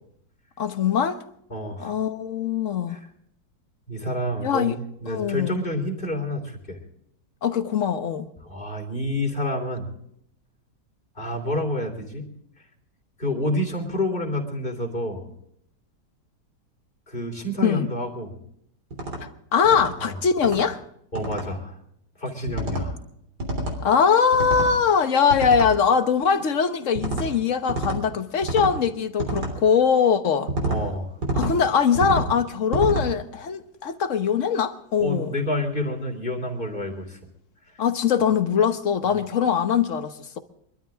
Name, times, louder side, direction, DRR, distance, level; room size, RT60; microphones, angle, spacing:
voice 1, 0.6-1.2 1.8-3.0 4.4-4.8 5.1-5.6 7.4-8.3 17.6-17.9 19.5-20.8 23.8-30.5 31.3-35.3 37.8-40.4, left 7 dB, 50° left, 1.3 m, -22 dB
voice 2, 1.5-2.0 2.9-3.1 3.9-4.7 5.0-6.8 8.4-9.9 11.2-12.3 13.2-15.3 17.1-18.4 20.0-20.2 21.1-21.8 22.2-22.9 30.7-31.1 35.0-37.2 37.7-37.8, left 1 dB, 30° left, 3.6 m, -28 dB
sound 1, 18.9-19.2 19.6-19.9 20.4-20.7 21.1-21.4 22.5-22.9 23.4-23.8 24.3-24.7 25.3-25.7 26.9-27.3 27.7-28.0 28.4-28.7 29.2-29.5 30.5-30.8 31.2-31.5 31.9-32.3 32.7-33.1, right 2 dB, 65° right, 3.9 m, -27 dB
24.0 x 13.0 x 3.6 m
omnidirectional pair, 1.9 m